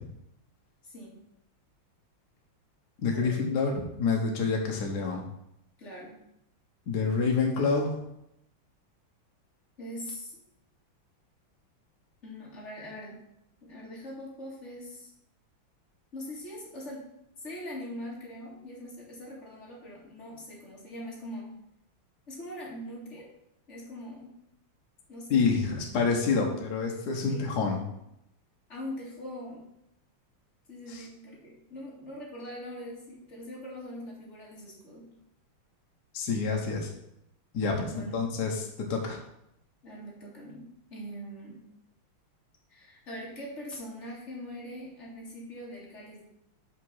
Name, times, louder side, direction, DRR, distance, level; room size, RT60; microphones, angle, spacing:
voice 1, 0.8-1.2 3.1-3.3 5.8-6.2 9.8-10.4 12.2-13.2 13.6-15.1 16.1-17.1 17.4-21.5 22.3-23.3 23.7-24.4 25.1-25.5 27.3-27.9 28.7-29.7 30.7-35.1 37.8-38.3 39.8-41.7 42.7-46.2, equal, 35° left, -3 dB, 2.1 m, -42 dB
voice 2, 3.0-5.2 6.9-8.0 25.3-27.8 30.9-31.0 36.1-36.9 37.5-39.2, left 4 dB, 55° left, 0 dB, 1.6 m, -28 dB
5.9 x 5.9 x 5.5 m, 0.80 s
omnidirectional pair, 2.3 m